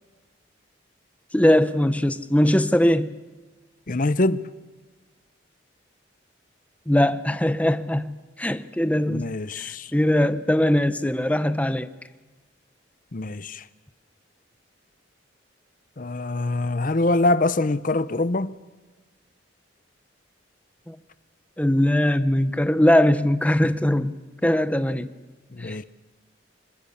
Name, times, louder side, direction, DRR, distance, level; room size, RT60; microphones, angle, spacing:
voice 1, 1.3-3.2 6.9-11.9 20.9-21.0 21.6-24.1 24.4-25.1 25.6-25.8, left 1 dB, 5° left, 0.7 m, -21 dB
voice 2, 3.9-4.4 9.1-9.9 13.1-13.6 16.0-18.5 25.5-25.8, left 2 dB, 45° left, 0.7 m, -24 dB
25.5 x 21.5 x 7.2 m
head